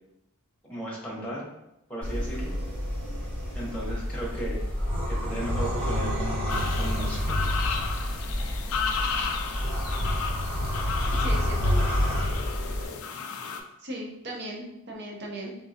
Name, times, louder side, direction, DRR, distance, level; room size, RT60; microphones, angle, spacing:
voice 1, 0.6-1.5 1.9-2.6 3.5-4.6 5.1-7.4, right 1 dB, 5° left, -5 dB, 0.9 m, -35 dB
sound 1, 2.0-12.8, equal, 25° right, 1.4 m, -28 dB
sound 2, 6.5-13.6, left 5 dB, 70° left, 0.4 m, -33 dB
voice 2, 11.2-11.9 13.8-15.6, right 1 dB, 50° right, -1 dB, 0.7 m, -37 dB
3.7 x 2.6 x 2.7 m, 0.87 s
head